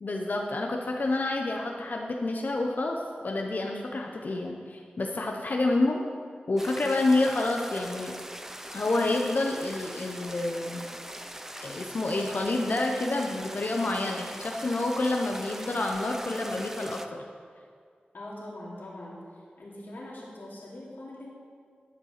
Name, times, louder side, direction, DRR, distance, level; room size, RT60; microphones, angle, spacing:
voice 1, 0.0-6.0 6.5-8.1 8.7-10.8 11.6-17.2, left 2 dB, 60° left, 1 dB, 0.7 m, -28 dB
sound 1, 6.6-17.1, right 1 dB, 10° right, 0.5 m, -41 dB
Bell, 12.2-13.5, left 1 dB, 65° right, 1.8 m, -48 dB
voice 2, 18.1-19.2 19.6-21.3, left 1 dB, 85° left, -6 dB, 2.6 m, -42 dB
11.0 x 5.1 x 6.5 m, 2.1 s
wide cardioid pair, 80°, 3 cm